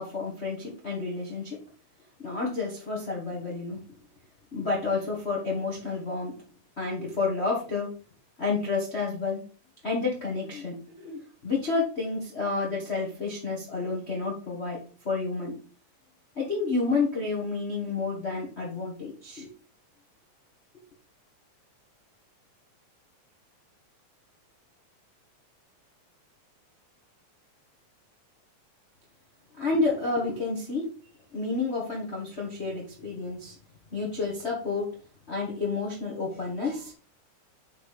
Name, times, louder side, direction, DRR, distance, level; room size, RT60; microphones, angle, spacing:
voice 1, 0.0-1.6 2.2-3.8 4.5-6.4 6.8-7.9 8.4-9.4 9.8-15.6 16.4-19.5 29.5-30.8 31.3-33.5 33.9-34.9 35.3-36.9, left 3 dB, 50° left, -3 dB, 0.7 m, -30 dB
5.8 x 4.3 x 4.8 m, 0.40 s
omnidirectional pair, 3.5 m